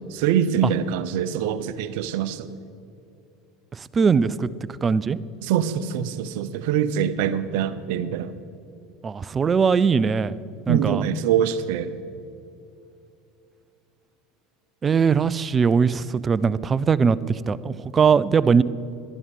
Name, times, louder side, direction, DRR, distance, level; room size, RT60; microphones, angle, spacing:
voice 1, 0.1-2.5 5.4-8.4 10.7-12.0, right 9 dB, 70° right, 13 dB, 0.7 m, -24 dB
voice 2, 3.9-4.5 4.8-5.2 9.0-10.3 10.7-11.0 14.8-18.6, right 6 dB, 30° right, 18 dB, 0.4 m, -20 dB
12.5 x 11.0 x 5.3 m, 2.5 s
hypercardioid pair, 85°, 0 cm